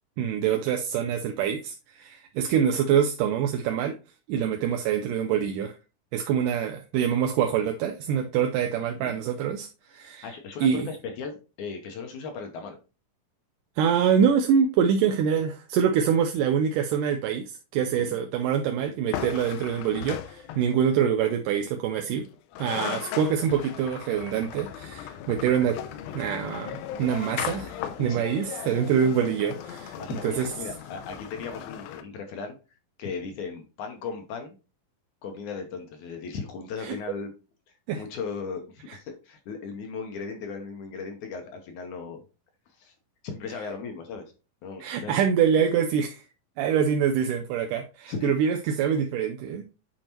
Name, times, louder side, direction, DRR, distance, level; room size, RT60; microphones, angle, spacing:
voice 1, 0.2-4.0 4.3-5.7 6.1-10.3 10.6-10.9 13.8-22.2 22.6-25.8 26.1-27.7 28.0-30.0 30.2-30.5 36.8-37.0 37.9-38.0 44.8-46.2 46.6-49.7, right 8 dB, 80° right, 2.0 m, -25 dB
voice 2, 10.0-12.8 18.0-18.2 27.6-28.5 29.9-32.6 33.0-34.6 35.2-37.3 38.0-42.2 42.8-42.9 43.2-44.2 44.6-45.2 48.1-48.4, left 5 dB, 70° left, 2.1 m, -37 dB
sound 1, 19.1-20.9 22.3-22.4 22.5-32.0, left 10 dB, 85° left, 2.5 m, -37 dB
8.8 x 4.4 x 3.0 m
omnidirectional pair, 4.1 m